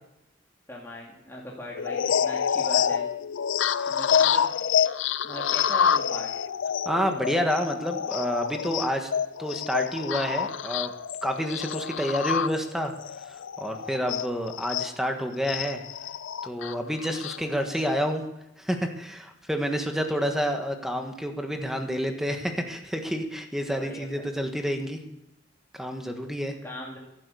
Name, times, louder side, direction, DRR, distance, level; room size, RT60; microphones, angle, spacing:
voice 1, 0.7-3.0 3.9-4.6 5.2-6.3 23.7-24.3 26.6-27.0, left 1 dB, 15° left, -4 dB, 2.4 m, -40 dB
sound 1, 1.7-14.9 15.4-17.9, left 7 dB, 80° left, 0.5 m, -28 dB
voice 2, 6.8-9.1 9.4-10.9 11.2-12.9 13.2-15.8 16.4-18.2 18.6-25.0 25.7-26.5, equal, ahead, 4 dB, 1.5 m, -29 dB
15.0 x 12.0 x 7.0 m, 0.86 s
head